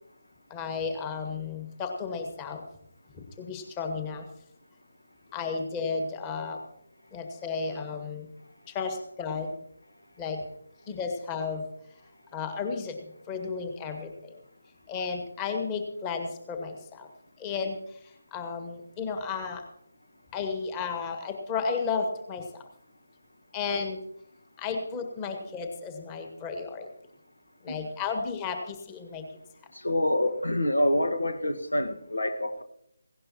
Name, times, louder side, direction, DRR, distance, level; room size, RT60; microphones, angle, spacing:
voice 1, 0.5-2.6 3.4-4.2 5.3-6.6 7.1-8.3 8.7-9.5 10.2-10.4 10.9-11.6 12.3-12.9 13.3-14.1 14.9-16.7 17.0-17.1 17.4-17.7 18.3-19.6 20.3-22.4 23.5-24.0 24.6-26.9 27.7-28.6 28.9-29.2, left 5 dB, 15° left, 5 dB, 1.7 m, -33 dB
voice 2, 29.7-32.6, left 1 dB, 75° left, 8 dB, 1.4 m, -27 dB
18.5 x 17.0 x 2.9 m, 0.74 s
figure-of-eight pair, 150°, 0 cm